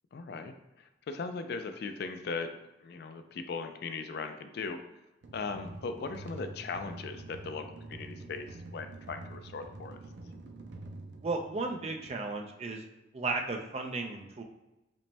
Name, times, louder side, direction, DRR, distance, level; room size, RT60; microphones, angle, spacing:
voice 1, 0.1-4.8 5.3-10.0, left 4 dB, 60° left, 8 dB, 0.4 m, -39 dB
sound 1, 5.2-12.1, right 2 dB, 90° right, 0.5 m, -46 dB
voice 2, 11.2-12.8 13.1-14.4, right 3 dB, 35° right, 3 dB, 0.4 m, -34 dB
5.1 x 2.1 x 3.4 m, 0.99 s
head